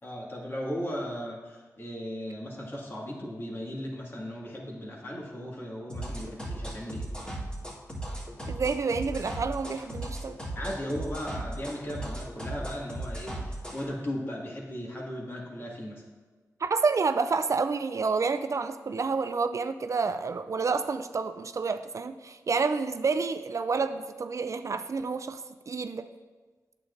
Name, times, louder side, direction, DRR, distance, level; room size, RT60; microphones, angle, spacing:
voice 1, 0.0-7.1 10.6-16.0, equal, 35° left, -3 dB, 2.0 m, -37 dB
sound 1, 5.9-13.8, right 1 dB, 15° left, 2.3 m, -36 dB
voice 2, 8.5-10.4 16.6-26.1, right 4 dB, 55° right, 10 dB, 0.3 m, -29 dB
8.8 x 7.7 x 2.6 m, 1.3 s
cardioid pair, 60°, 6 cm